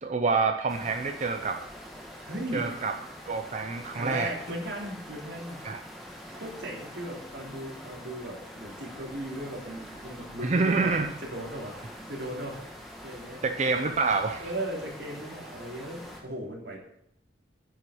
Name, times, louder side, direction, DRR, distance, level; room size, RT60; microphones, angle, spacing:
voice 1, 0.0-1.6 2.5-2.9 3.3-4.3 5.6-5.8 10.4-11.1 13.4-14.5, right 4 dB, 40° right, 6 dB, 0.6 m, -27 dB
sound 1, 0.7-16.2, equal, ahead, 1.8 m, -45 dB
voice 2, 2.2-2.7 3.9-5.6 6.3-11.8 12.1-12.6 13.0-13.4 14.4-16.8, right 1 dB, 75° right, -2 dB, 3.1 m, -37 dB
9.7 x 6.1 x 7.8 m, 0.76 s
head